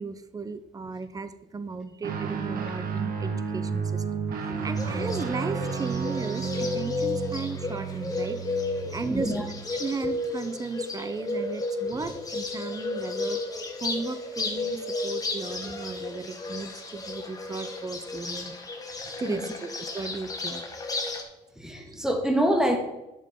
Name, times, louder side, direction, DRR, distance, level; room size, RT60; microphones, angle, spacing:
voice 1, 0.0-8.4 8.9-9.3 9.8-13.4 13.8-18.5 19.2-20.6 21.8-21.9, right 4 dB, 20° right, 12 dB, 0.7 m, -35 dB
Guitar, 2.0-9.7, right 6 dB, 55° right, 1.4 m, -32 dB
Bird, 4.8-21.2, left 3 dB, 20° left, 1.4 m, -33 dB
voice 2, 9.0-9.5 12.0-12.1 19.0-19.4 21.5-22.8, equal, 5° right, 3 dB, 1.7 m, -27 dB
11.0 x 6.4 x 3.7 m, 0.96 s
cardioid pair, 110°, 17 cm